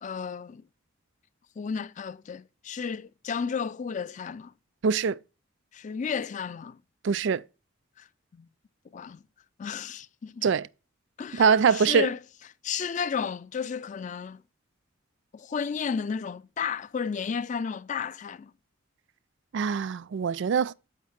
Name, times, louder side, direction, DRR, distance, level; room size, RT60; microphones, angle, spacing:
voice 1, 0.0-0.6 1.6-4.5 5.7-6.8 8.0-8.1 8.3-8.5 8.9-9.2 9.6-10.5 11.2-12.2 12.6-14.4 15.3-18.5, left 6 dB, 35° left, 0.3 m, -33 dB
voice 2, 4.8-5.2 7.0-7.4 10.4-10.7 11.3-12.1 19.5-20.7, right 6 dB, 60° right, 0.4 m, -23 dB
7.3 x 5.6 x 5.8 m
head